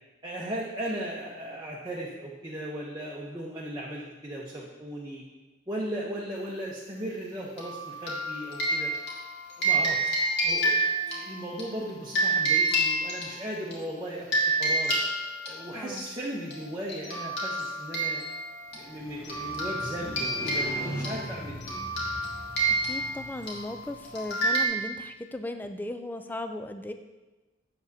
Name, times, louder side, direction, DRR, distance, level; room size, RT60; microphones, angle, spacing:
voice 1, 0.2-5.2 5.7-8.9 9.6-10.1 10.4-14.3 14.6-14.9 15.4-18.2 18.7-21.8, right 1 dB, 20° right, -4 dB, 0.8 m, -37 dB
sound 1, 7.6-13.8 14.3-16.1 16.5-16.6 16.9-24.7, right 2 dB, 60° left, 1.9 m, -29 dB
voice 2, 15.7-16.1 22.8-26.9, left 1 dB, 10° left, 8 dB, 0.3 m, -37 dB
Motorcycle, 18.8-24.7, right 1 dB, 50° right, 0.9 m, -41 dB
7.7 x 7.2 x 2.7 m, 1.1 s
head